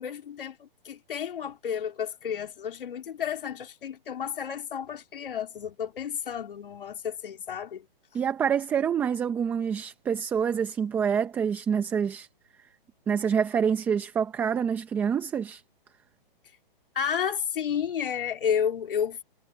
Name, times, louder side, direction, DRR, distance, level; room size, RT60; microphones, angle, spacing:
voice 1, 0.0-7.9 16.9-19.2, left 8 dB, 65° left, 3.4 m, -31 dB
voice 2, 8.1-12.3 13.1-15.6, right 7 dB, 5° right, 0.7 m, -26 dB
hypercardioid pair, 160°, 29 cm